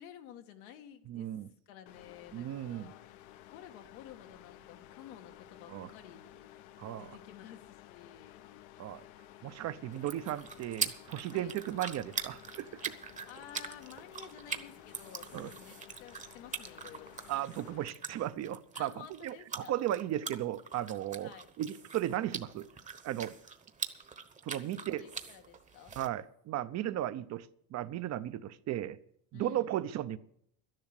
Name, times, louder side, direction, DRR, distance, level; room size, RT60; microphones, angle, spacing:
voice 1, 0.0-1.3 1.7-3.0 3.5-6.4 6.9-8.5 11.3-11.5 13.3-17.2 18.7-19.9 21.2-21.5 24.6-26.0 29.3-29.7, left 10 dB, 85° left, 1.8 m, -52 dB
voice 2, 1.1-1.5 2.3-2.9 5.7-5.9 6.8-7.1 8.8-9.0 9.4-13.0 15.3-15.5 17.3-18.9 19.2-21.3 21.6-22.7 23.0-23.3 24.4-25.0 26.0-29.0 29.3-30.2, right 12 dB, 40° right, 0.7 m, -36 dB
sound 1, 1.9-17.9, left 13 dB, 70° left, 0.9 m, -54 dB
sound 2, 9.9-26.1, right 5 dB, 20° right, 1.0 m, -43 dB
12.0 x 10.5 x 6.6 m
cardioid pair, 135°, 41 cm